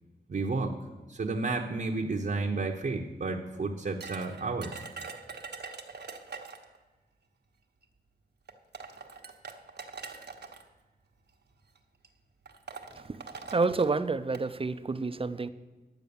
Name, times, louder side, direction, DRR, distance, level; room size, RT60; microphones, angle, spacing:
voice 1, 0.3-0.7 1.1-4.8, right 3 dB, 55° right, 0 dB, 1.0 m, -31 dB
sound 1, 4.0-6.8 7.8-7.9 8.5-10.6 11.5-11.8 12.0-12.1 12.5-14.5, right 5 dB, 75° right, 1.1 m, -43 dB
voice 2, 13.5-15.5, right 3 dB, 35° right, 12 dB, 0.6 m, -29 dB
11.0 x 7.6 x 7.0 m, 1.2 s
cardioid pair, 70°, 17 cm